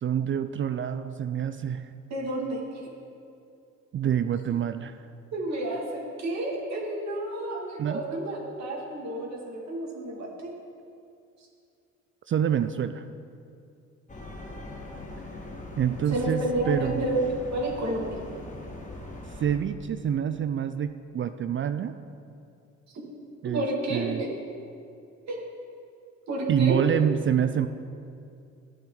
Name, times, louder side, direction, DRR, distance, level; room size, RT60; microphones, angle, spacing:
voice 1, 0.0-1.9 3.9-4.9 7.8-8.0 12.3-13.1 15.8-17.1 19.4-21.9 23.4-23.6 23.9-24.2 26.5-27.7, right 9 dB, 40° right, 10 dB, 0.4 m, -26 dB
voice 2, 2.1-2.9 5.3-10.5 16.1-18.2 23.4-24.3 25.3-25.4 26.3-26.8, right 1 dB, 60° right, -2 dB, 2.4 m, -30 dB
sound 1, 14.1-19.6, left 2 dB, 25° left, 1.5 m, -41 dB
12.5 x 8.7 x 3.9 m, 2.5 s
cardioid pair, 90°, 30 cm